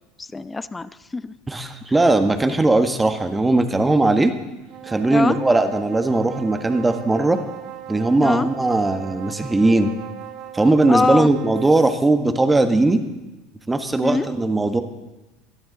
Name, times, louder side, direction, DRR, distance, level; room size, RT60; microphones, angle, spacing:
voice 1, 0.2-1.3 5.1-5.4 8.2-8.5 10.9-11.3 14.0-14.3, left 3 dB, 15° left, 16 dB, 0.6 m, -23 dB
voice 2, 1.5-4.3 4.8-7.4 7.9-9.9 10.5-13.0 13.7-14.8, right 2 dB, 15° right, 8 dB, 1.4 m, -19 dB
sound 1, 4.6-12.1, right 11 dB, 50° right, 1.1 m, -38 dB
17.5 x 12.0 x 4.0 m, 1.1 s
hypercardioid pair, 75°, 0 cm